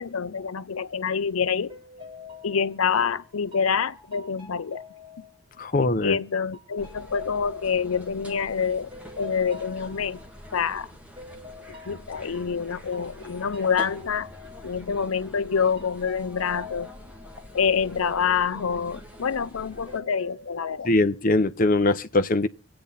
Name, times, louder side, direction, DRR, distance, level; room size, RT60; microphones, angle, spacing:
voice 1, 0.0-1.8 2.4-4.8 5.8-8.9 9.2-10.2 10.5-10.9 11.9-14.3 14.6-16.9 17.5-20.9, left 6 dB, 90° left, 0.6 m, -26 dB
sound 1, 1.0-1.3 1.7-6.0 6.5-10.7 11.2-15.4 15.8-19.5 19.9-20.6, left 4 dB, 25° right, 5.4 m, -46 dB
voice 2, 5.6-6.2 20.8-22.5, left 2 dB, 40° left, 0.8 m, -22 dB
sound 2, 6.8-20.0, equal, 5° right, 2.1 m, -45 dB
26.0 x 8.8 x 4.0 m
head